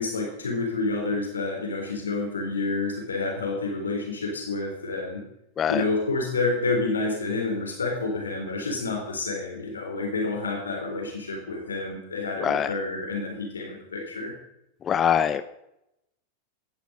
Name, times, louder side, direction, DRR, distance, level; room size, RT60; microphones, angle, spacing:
voice 1, 0.0-5.2 5.7-14.3, left 3 dB, 70° left, 0 dB, 3.7 m, -29 dB
voice 2, 14.8-15.4, left 8 dB, 25° left, 12 dB, 0.6 m, -23 dB
17.0 x 10.5 x 5.3 m, 0.84 s
figure-of-eight pair, 90°, 0 cm